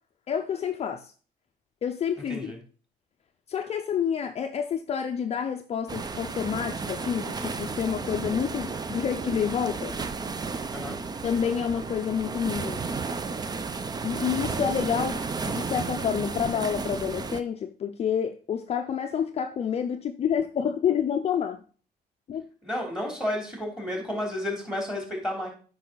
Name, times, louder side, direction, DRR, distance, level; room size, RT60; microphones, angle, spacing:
voice 1, 0.3-1.1 1.8-2.5 3.5-10.0 11.2-12.8 14.0-15.2 15.4-21.6 22.3-22.4, left 8 dB, 40° left, 0.5 m, -28 dB
sound 1, 5.9-17.4, right 4 dB, 25° right, 0.6 m, -33 dB
voice 2, 22.6-25.5, left 1 dB, 5° right, 3.3 m, -31 dB
9.0 x 5.5 x 3.9 m
cardioid pair, 110°, 17 cm